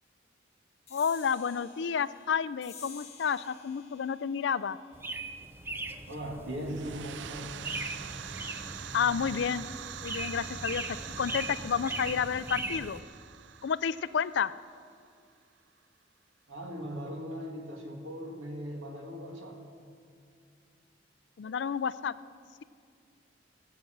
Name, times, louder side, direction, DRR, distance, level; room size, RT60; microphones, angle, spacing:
voice 1, 0.9-4.8 8.9-9.7 10.0-13.0 13.6-14.5 21.4-22.1, left 7 dB, 65° left, 16 dB, 0.4 m, -30 dB
sound 1, 0.9-7.7, left 7 dB, 35° left, 2.1 m, -54 dB
sound 2, 4.9-13.0, right 2 dB, 10° right, 0.5 m, -39 dB
voice 2, 6.1-7.6 16.5-19.6, equal, 85° right, 1 dB, 2.3 m, -39 dB
sound 3, 6.6-15.2, right 10 dB, 65° right, 0.4 m, -44 dB
18.5 x 7.3 x 7.8 m, 2.2 s
head